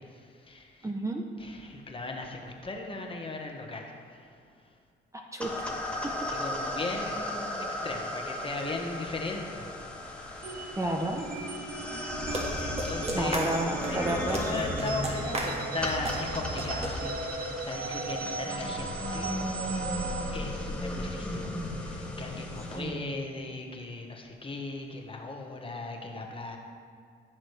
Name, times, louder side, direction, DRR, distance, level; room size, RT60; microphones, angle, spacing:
voice 1, 0.0-0.9 1.4-4.4 4.7-4.8 6.3-9.9 10.2-10.5 12.6-19.4 20.3-26.6, left 3 dB, 25° left, 2 dB, 1.3 m, -38 dB
voice 2, 0.8-1.2 5.1-5.5 10.8-11.3 13.1-14.6 22.7-23.1, right 1 dB, 15° right, 2 dB, 0.7 m, -31 dB
sound 1, 5.4-22.8, left 1 dB, 5° left, 1.4 m, -36 dB
sound 2, 10.4-20.3, right 4 dB, 50° right, 0.7 m, -38 dB
sound 3, 12.1-16.9, right 1 dB, 30° right, 1.7 m, -34 dB
15.0 x 6.3 x 3.3 m, 2.2 s
cardioid pair, 90°, 20 cm